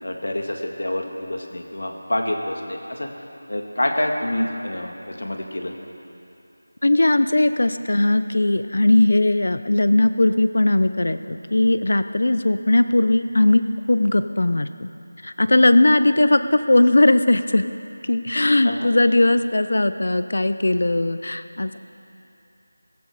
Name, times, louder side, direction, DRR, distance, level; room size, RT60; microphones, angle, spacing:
voice 1, 0.0-3.1 3.5-5.7 18.6-18.9, left 1 dB, 80° left, 3 dB, 1.9 m, -27 dB
voice 2, 6.8-13.6 13.9-14.7 15.2-17.7 18.0-21.8, left 2 dB, 55° left, 11 dB, 0.6 m, -18 dB
15.0 x 15.0 x 4.9 m, 2.8 s
figure-of-eight pair, 180°, 0 cm